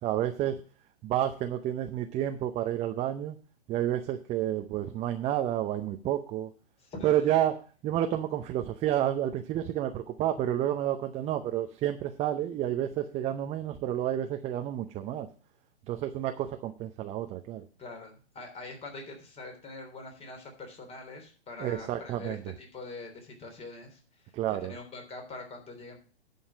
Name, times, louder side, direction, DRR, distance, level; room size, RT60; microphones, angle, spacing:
voice 1, 0.0-0.6 1.0-3.4 3.7-6.5 7.0-7.6 7.8-15.3 15.9-17.6 21.6-22.4 24.3-24.7, right 11 dB, 20° right, 6 dB, 0.7 m, -30 dB
voice 2, 6.8-7.4 17.8-26.0, left 3 dB, 20° left, 3 dB, 3.3 m, -44 dB
11.0 x 5.5 x 7.2 m, 0.39 s
hypercardioid pair, 125°, 32 cm